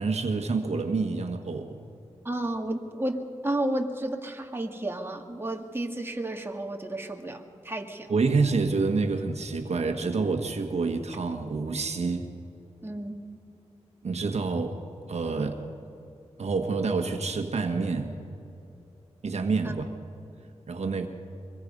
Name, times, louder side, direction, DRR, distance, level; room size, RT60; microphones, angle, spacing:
voice 1, 0.0-1.8 8.1-12.3 14.0-14.8 15.1-15.6 16.4-18.1 19.2-19.9 20.7-21.1, right 4 dB, 65° right, 5 dB, 1.6 m, -27 dB
voice 2, 2.2-8.1 12.8-13.2 19.6-19.7, right 1 dB, 20° right, 2 dB, 2.2 m, -32 dB
24.5 x 21.0 x 5.5 m, 2.8 s
cardioid pair, 55°, 12 cm